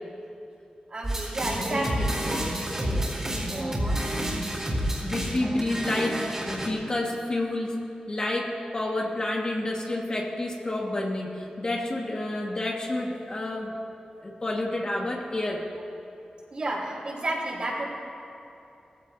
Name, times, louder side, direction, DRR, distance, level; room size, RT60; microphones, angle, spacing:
voice 1, 0.9-4.0 16.5-17.8, right 1 dB, 50° right, -5 dB, 3.9 m, -32 dB
sound 1, 1.0-6.7, right 1 dB, 20° right, 3.6 m, -29 dB
voice 2, 1.6-2.1 4.7-13.8 14.2-15.6, left 1 dB, 35° left, -1 dB, 1.6 m, -30 dB
20.0 x 15.5 x 2.7 m, 2.7 s
wide cardioid pair, 100°, 2 cm